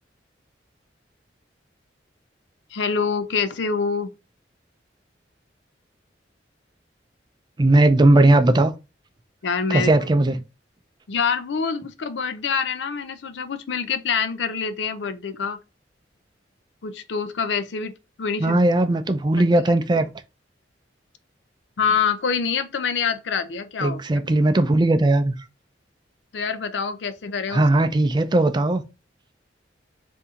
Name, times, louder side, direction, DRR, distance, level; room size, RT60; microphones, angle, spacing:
voice 1, 2.7-4.1 9.4-9.9 11.1-15.6 16.8-17.9 18.2-18.6 21.8-24.0 26.3-27.6, left 6 dB, 75° left, 0.5 m, -25 dB
voice 2, 7.6-8.7 9.7-10.3 18.4-20.1 23.8-25.3 27.5-28.8, right 2 dB, 25° right, 0.4 m, -18 dB
4.2 x 2.6 x 3.6 m
head